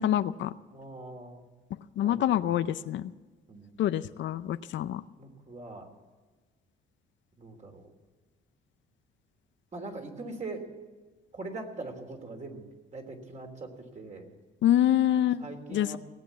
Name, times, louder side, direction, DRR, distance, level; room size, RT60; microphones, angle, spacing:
voice 1, 0.0-0.5 2.0-3.1 3.8-5.0 14.6-15.4 15.7-16.0, left 11 dB, 70° left, 13 dB, 0.6 m, -26 dB
voice 2, 0.7-1.4 2.0-2.6 3.5-3.8 5.2-5.9 7.4-7.8 9.7-10.7 11.3-12.6 12.9-14.3 15.4-16.0, right 2 dB, 35° right, 3 dB, 3.2 m, -42 dB
18.5 x 8.3 x 8.2 m, 1.3 s
cardioid pair, 90°, 20 cm